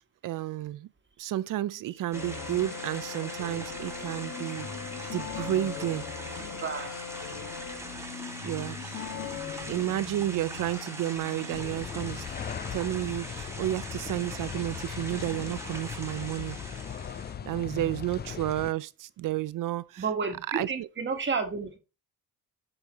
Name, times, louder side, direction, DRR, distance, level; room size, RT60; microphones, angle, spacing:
voice 1, 0.2-0.9 1.2-4.7 5.1-6.0 8.4-8.8 9.6-12.3 12.7-16.6 17.5-20.0 20.5-20.9, right 14 dB, 65° right, 0.5 m, -31 dB
sound 1, 2.1-11.6, left 7 dB, 50° left, 1.5 m, -40 dB
sound 2, 2.1-17.3, right 1 dB, 5° right, 1.3 m, -42 dB
voice 2, 6.3-6.9 17.6-17.9 20.0-21.8, right 5 dB, 30° right, 1.3 m, -32 dB
sound 3, 11.5-18.7, left 8 dB, 30° left, 0.3 m, -38 dB
7.8 x 5.5 x 2.9 m
cardioid pair, 130°, 36 cm